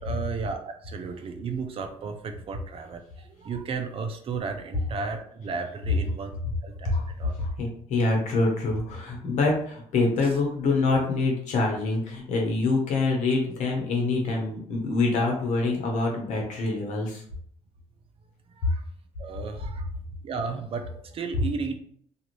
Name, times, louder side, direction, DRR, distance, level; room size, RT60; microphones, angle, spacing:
voice 1, 0.0-6.3 6.6-7.3 18.6-18.8 19.2-19.8 20.2-21.8, right 5 dB, 45° right, 6 dB, 0.5 m, -34 dB
voice 2, 7.4-17.2 18.6-18.7, left 3 dB, 70° left, 0 dB, 1.0 m, -25 dB
2.5 x 2.4 x 3.0 m, 0.63 s
supercardioid pair, 75°, 13 cm